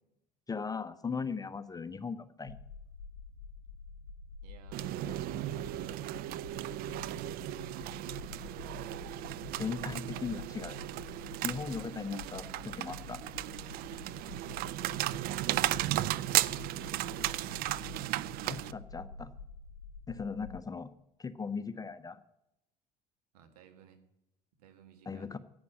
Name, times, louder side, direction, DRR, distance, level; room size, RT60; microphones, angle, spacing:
voice 1, 0.5-2.6 9.6-10.8 11.4-13.2 18.4-19.3 20.1-20.9 21.2-22.2 25.1-25.4, left 5 dB, 20° left, 13 dB, 0.8 m, -38 dB
sound 1, 2.4-20.6, left 5 dB, 80° left, 0.8 m, -48 dB
voice 2, 4.4-7.7 14.7-15.1 23.3-24.0 24.6-25.4, right 8 dB, 70° right, 7 dB, 1.8 m, -59 dB
sound 2, 4.7-18.7, right 16 dB, 50° right, 0.4 m, -35 dB
11.0 x 8.8 x 8.9 m, 0.85 s
figure-of-eight pair, 60°, 20 cm